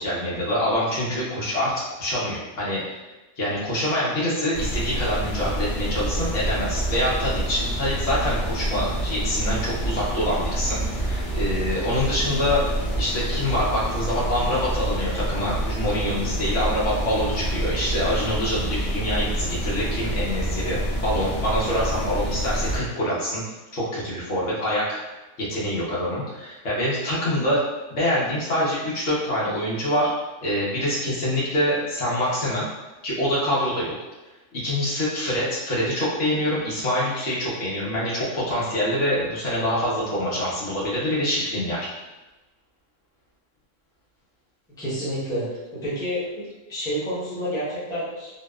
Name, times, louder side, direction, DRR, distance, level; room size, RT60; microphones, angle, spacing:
voice 1, 0.0-1.7 2.0-3.0 3.4-12.6 13.0-23.4 23.7-25.0 25.4-27.6 27.9-30.1 30.4-32.7 33.0-33.9 34.5-41.9, equal, 75° left, -8 dB, 1.2 m, -25 dB
sound 1, 4.5-22.8, right 1 dB, 40° left, 0.8 m, -27 dB
voice 2, 44.8-48.3, equal, 5° left, -11 dB, 0.7 m, -29 dB
2.8 x 2.0 x 2.3 m, 1.1 s
omnidirectional pair, 1.3 m